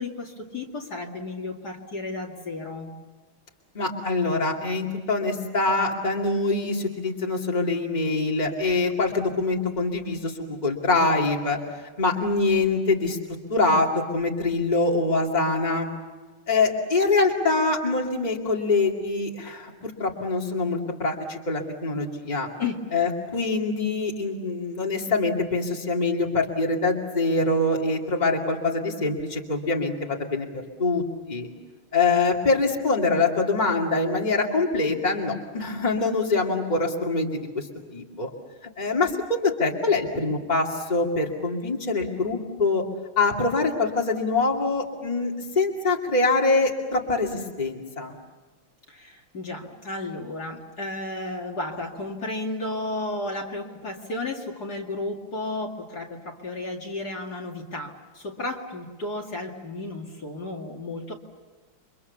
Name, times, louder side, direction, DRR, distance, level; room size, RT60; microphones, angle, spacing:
voice 1, 0.0-2.9 22.6-22.8 48.9-61.1, left 2 dB, 45° left, 0 dB, 2.7 m, -33 dB
voice 2, 3.7-11.6 12.0-13.2 13.5-13.9 14.1-15.9 16.5-22.5 22.9-31.5 31.9-38.3 38.8-42.8 43.2-48.1, left 3 dB, 20° left, 0 dB, 2.6 m, -24 dB
29.5 x 25.0 x 7.0 m, 1.3 s
omnidirectional pair, 2.3 m